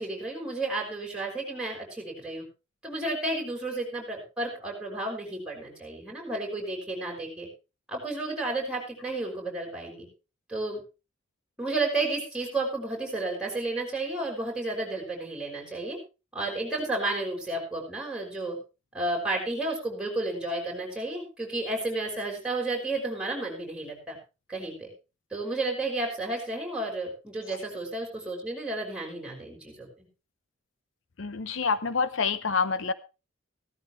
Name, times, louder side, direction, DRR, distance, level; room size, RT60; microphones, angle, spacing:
voice 1, 0.0-2.5 2.8-7.5 7.9-10.1 10.5-10.8 11.6-16.0 16.3-18.6 18.9-24.2 24.5-24.9 25.3-30.1, right 2 dB, 5° right, 0 dB, 5.6 m, -32 dB
voice 2, 31.2-32.9, left 5 dB, 70° left, 14 dB, 0.8 m, -27 dB
16.0 x 13.5 x 3.3 m, 0.29 s
head